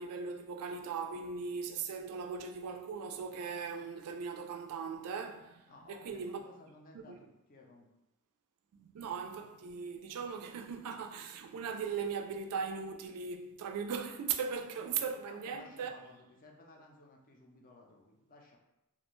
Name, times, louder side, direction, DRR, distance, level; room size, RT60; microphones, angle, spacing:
voice 1, 0.0-6.4 7.1-7.2 8.7-15.9, right 6 dB, 75° right, 0.3 m, -39 dB
voice 2, 5.7-7.9 14.9-18.6, left 2 dB, 40° left, 0.4 m, -57 dB
2.4 x 2.1 x 2.9 m
head